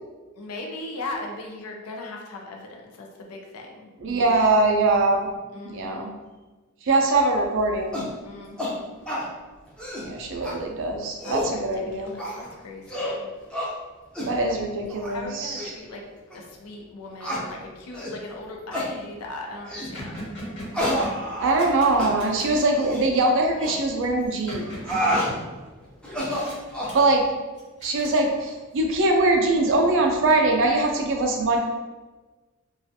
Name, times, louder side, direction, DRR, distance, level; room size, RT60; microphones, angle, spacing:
voice 1, 0.4-4.5 5.5-6.1 8.2-8.9 11.2-13.3 15.1-16.0 16.3-20.3, left 2 dB, 85° left, 1 dB, 0.5 m, -38 dB
voice 2, 4.0-5.3 5.6-6.1 6.8-8.0 10.0-12.1 14.2-15.7 20.8-21.0 21.4-24.6 26.9-27.3 27.8-31.6, right 2 dB, 60° right, 2 dB, 0.4 m, -22 dB
sound 1, 7.9-8.1 8.6-8.7 9.1-9.3 9.7-10.1 10.4-10.5 11.0-11.5 12.2-12.5 12.9-13.2 13.5-13.7 14.1-14.3 14.9-15.1 15.6-15.7 16.3-16.4 17.2-17.4 17.9-18.2 18.7-18.9 19.7-19.9 20.7-21.7 22.0-22.1 22.8-23.0 23.6-23.8 24.6-25.3 26.0-27.0, equal, 5° left, 0.5 m, -28 dB
sound 2, 18.3-18.6 19.1-19.2 19.4-22.7 23.6-25.9 26.3-27.2 27.6-28.7, equal, 55° left, 1.1 m, -39 dB
2.4 x 2.3 x 2.6 m, 1.2 s
head